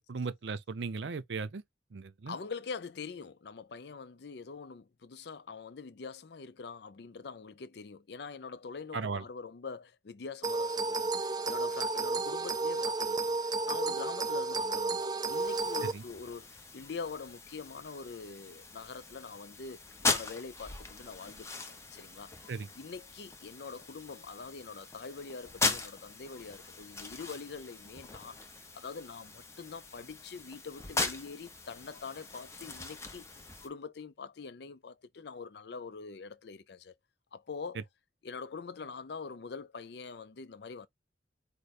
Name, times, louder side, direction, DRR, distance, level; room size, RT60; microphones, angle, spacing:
voice 1, 0.0-1.6 1.9-2.4 8.9-9.2 15.9-16.0 22.5-22.7, right 4 dB, 70° right, 0.5 m, -37 dB
voice 2, 2.3-36.9 37.3-37.9 38.2-40.9, left 5 dB, 60° left, 0.5 m, -44 dB
sound 1, 10.4-15.9, right 3 dB, 20° right, 0.3 m, -32 dB
sound 2, 15.3-33.7, left 3 dB, 15° left, 0.7 m, -39 dB
4.8 x 2.1 x 4.1 m
head